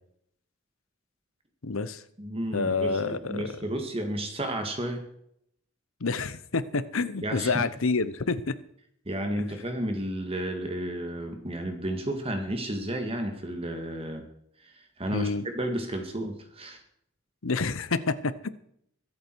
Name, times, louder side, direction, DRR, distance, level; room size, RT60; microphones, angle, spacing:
voice 1, 1.6-2.0 2.5-3.5 6.0-8.5 15.1-15.4 17.4-18.5, left 4 dB, 75° left, 14 dB, 0.9 m, -28 dB
voice 2, 2.2-5.1 7.2-7.6 9.1-14.3 14.6-16.8, right 1 dB, 25° right, 5 dB, 1.8 m, -32 dB
23.0 x 8.5 x 4.7 m, 0.70 s
head